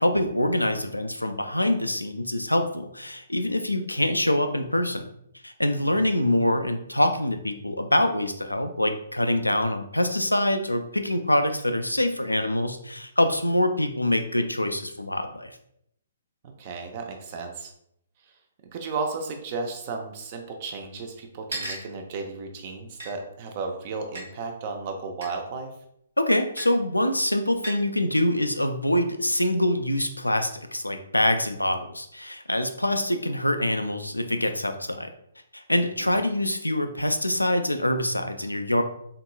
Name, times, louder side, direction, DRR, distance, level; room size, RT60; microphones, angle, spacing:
voice 1, 0.0-5.1 5.4-15.5 26.2-35.1 35.5-38.8, left 1 dB, 85° left, 7 dB, 0.4 m, -25 dB
voice 2, 16.4-17.7 18.7-25.7 36.0-36.2, right 4 dB, 35° right, 4 dB, 0.6 m, -34 dB
sound 1, 19.5-19.6 19.8-19.9 20.7-20.8 21.5-21.9 23.0-23.1 24.2-24.3 25.2-25.4 26.6-26.7 27.6-27.9, right 1 dB, 65° right, 1.3 m, -35 dB
3.8 x 3.6 x 2.3 m, 0.74 s
figure-of-eight pair, 125°, 0 cm